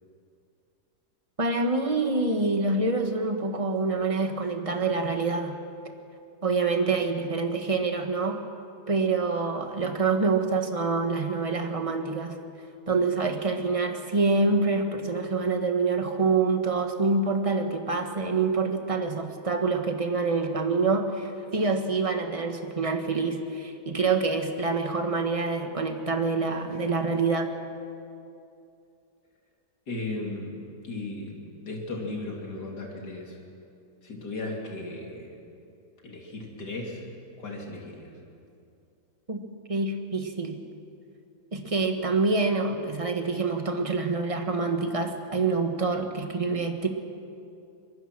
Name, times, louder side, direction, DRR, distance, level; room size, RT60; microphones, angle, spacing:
voice 1, 1.4-5.6 6.4-8.4 8.9-12.4 12.9-27.5 39.3-40.6 41.5-46.9, right 3 dB, 20° right, 5 dB, 1.5 m, -26 dB
voice 2, 29.9-33.4 34.0-35.4 36.0-37.0 37.4-38.1, left 2 dB, 85° left, -1 dB, 3.4 m, -36 dB
24.0 x 21.0 x 6.2 m, 2.6 s
omnidirectional pair, 1.7 m